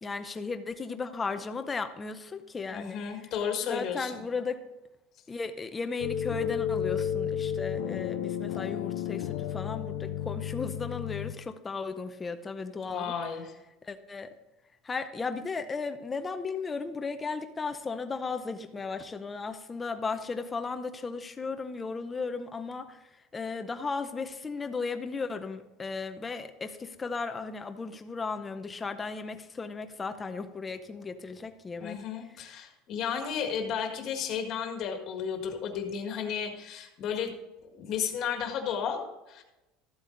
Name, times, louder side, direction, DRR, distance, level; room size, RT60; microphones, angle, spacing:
voice 1, 0.0-3.0 3.6-4.6 5.3-13.1 13.8-14.3 14.8-23.0 23.3-32.0, left 4 dB, 15° left, 9 dB, 0.6 m, -35 dB
voice 2, 2.7-4.2 12.9-13.5 31.8-37.3 37.7-39.4, left 7 dB, 35° left, 4 dB, 1.6 m, -33 dB
sound 1, 6.0-11.3, left 9 dB, 65° left, 0.7 m, -32 dB
13.5 x 8.1 x 3.9 m, 1.0 s
cardioid pair, 175°, 0 cm